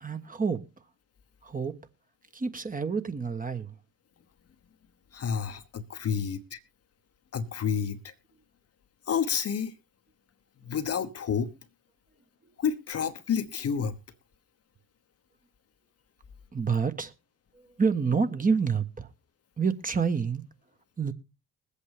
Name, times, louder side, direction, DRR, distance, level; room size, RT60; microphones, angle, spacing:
voice 1, 0.0-0.6 1.4-1.8 2.3-3.8 16.5-17.1 17.8-19.1 19.6-20.4 21.0-21.1, right 5 dB, 20° right, 1.2 m, -28 dB
voice 2, 5.1-6.6 7.3-8.1 9.1-9.7 10.6-11.5 12.6-14.0, left 7 dB, 40° left, 1.0 m, -29 dB
21.5 x 8.3 x 3.4 m
figure-of-eight pair, 45°, 39 cm